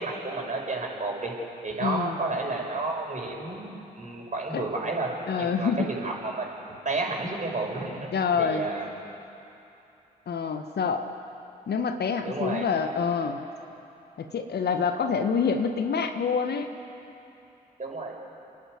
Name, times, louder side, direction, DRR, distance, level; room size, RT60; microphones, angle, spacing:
voice 1, 0.0-1.3 1.6-3.7 3.9-5.1 5.4-8.1 8.4-8.9 12.2-12.7 17.8-18.1, right 3 dB, 40° right, -1 dB, 6.3 m, -31 dB
voice 2, 1.8-2.2 4.5-4.6 5.3-5.9 8.1-8.7 10.3-11.1 11.7-13.4 14.2-16.7, left 6 dB, 55° left, 7 dB, 1.5 m, -27 dB
29.5 x 11.0 x 9.7 m, 2.9 s
hypercardioid pair, 40°, 20 cm